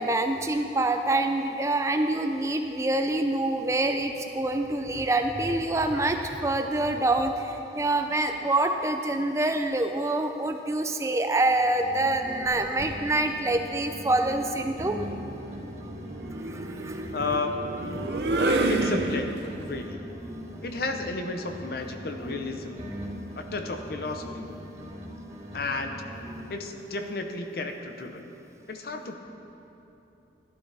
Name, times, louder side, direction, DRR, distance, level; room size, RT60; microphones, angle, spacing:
voice 1, 0.0-15.0 16.5-17.1 18.3-18.4, right 2 dB, 15° right, 6 dB, 0.3 m, -26 dB
sound 1, 11.4-13.0 13.3-17.0 17.3-21.0 21.3-25.0 25.3-26.7, equal, 35° right, 2.2 m, -41 dB
sound 2, 12.5-13.0 14.4-19.6, right 2 dB, 60° right, 0.7 m, -30 dB
voice 2, 17.1-17.6 18.7-19.3 19.7-20.0 20.6-22.8 23.4-24.5 25.5-26.0 26.5-28.2 28.7-29.1, left 3 dB, 55° left, 6 dB, 0.7 m, -32 dB
12.0 x 11.5 x 3.4 m, 3.0 s
head